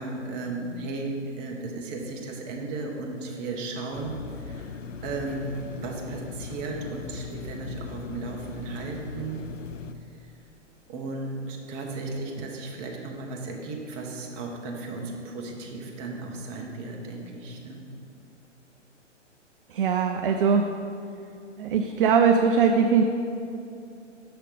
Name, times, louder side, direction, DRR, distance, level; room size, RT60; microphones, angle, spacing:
voice 1, 0.0-4.7 5.0-9.5 10.2-10.3 10.9-17.9, right 3 dB, 25° right, 0 dB, 1.0 m, -35 dB
sound 1, 3.9-9.9, left 6 dB, 85° left, 0.5 m, -39 dB
voice 2, 19.7-20.7 21.6-23.0, right 6 dB, 50° right, 4 dB, 0.5 m, -21 dB
6.8 x 5.7 x 5.1 m, 2.7 s
figure-of-eight pair, 120°, 37 cm